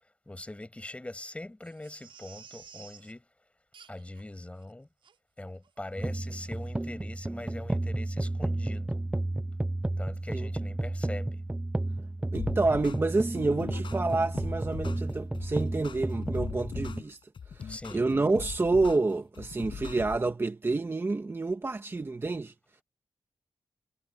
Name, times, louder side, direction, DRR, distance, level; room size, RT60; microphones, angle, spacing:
voice 1, 0.3-3.3 3.9-4.9 5.4-9.0 10.0-11.4 17.7-18.0, left 1 dB, 15° left, 6.0 m, -42 dB
Crying sobbing, 1.6-3.1 3.7-4.2 4.6-4.7 5.0-5.2 5.6-5.8 6.0-6.1, right 7 dB, 85° right, 6.1 m, -52 dB
sound 1, 6.0-17.0, right 2 dB, 10° right, 0.5 m, -32 dB
sound 2, 12.3-20.3, left 6 dB, 75° left, 5.6 m, -40 dB
voice 2, 12.3-17.2 17.5-22.5, right 3 dB, 30° right, 1.5 m, -28 dB
wide cardioid pair, 130°, 9 cm